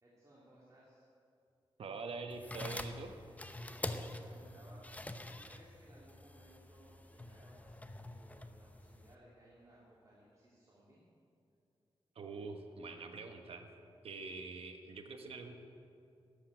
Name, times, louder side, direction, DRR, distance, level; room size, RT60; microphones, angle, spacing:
voice 1, 0.0-1.1 3.5-11.0, right 1 dB, 35° right, -7 dB, 2.7 m, -62 dB
voice 2, 1.8-3.2 12.1-13.7 14.0-15.5, right 4 dB, 80° right, 5 dB, 1.2 m, -45 dB
sound 1, 2.3-9.1, left 1 dB, 15° left, 0.7 m, -46 dB
13.0 x 8.0 x 8.9 m, 2.5 s
wide cardioid pair, 100°, 10 cm